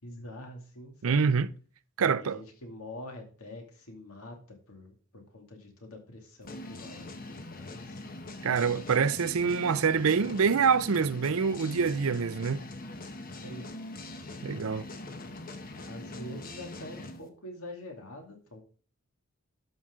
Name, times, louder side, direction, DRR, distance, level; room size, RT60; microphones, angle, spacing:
voice 1, 0.0-1.2 2.2-8.0 13.3-13.7 15.8-18.6, left 1 dB, 70° left, 2.5 m, -45 dB
voice 2, 1.0-1.5 2.0-2.4 8.4-12.6 14.4-14.9, right 6 dB, 65° right, 0.5 m, -26 dB
sound 1, 6.4-17.2, left 2 dB, 40° left, 1.1 m, -42 dB
12.0 x 5.9 x 3.7 m
head